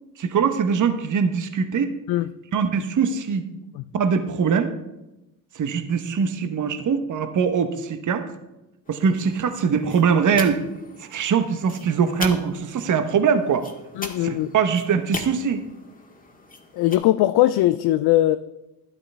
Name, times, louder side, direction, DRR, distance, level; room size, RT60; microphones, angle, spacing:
voice 1, 0.2-1.9 2.5-3.4 3.9-4.7 5.5-8.3 8.9-10.6 11.0-13.7 14.2-15.6, right 6 dB, 40° right, 9 dB, 1.1 m, -22 dB
sound 1, 8.8-17.0, left 2 dB, 20° left, 1.7 m, -39 dB
voice 2, 14.0-14.5 16.7-18.4, left 14 dB, 60° left, 13 dB, 0.5 m, -20 dB
11.5 x 8.7 x 3.4 m, 0.96 s
supercardioid pair, 70°, 45 cm